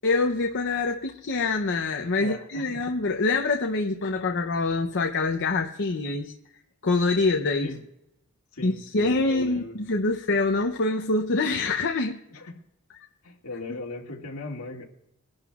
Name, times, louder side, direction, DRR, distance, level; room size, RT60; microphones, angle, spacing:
voice 1, 0.0-6.3 6.8-7.7 8.6-12.2, left 3 dB, 55° left, 3 dB, 0.7 m, -25 dB
voice 2, 2.2-2.6 7.6-7.8 8.5-9.8 12.3-12.6 13.2-14.9, left 2 dB, 75° left, 0 dB, 2.2 m, -38 dB
23.0 x 11.5 x 2.4 m, 0.85 s
head